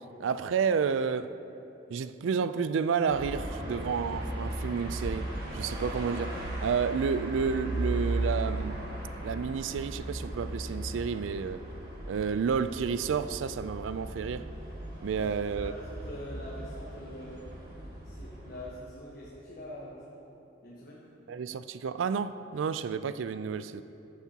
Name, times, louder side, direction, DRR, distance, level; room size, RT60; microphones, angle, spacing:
voice 1, 0.2-1.4 1.9-5.3 5.5-8.8 9.2-11.6 12.1-14.5 15.0-15.7 21.3-23.8, right 6 dB, 85° right, 0.3 m, -30 dB
sound 1, 3.0-18.7, right 1 dB, 55° right, 1.6 m, -37 dB
voice 2, 15.2-17.5 18.0-20.2 20.6-21.0, left 1 dB, 50° left, 1.2 m, -44 dB
14.0 x 8.2 x 2.8 m
head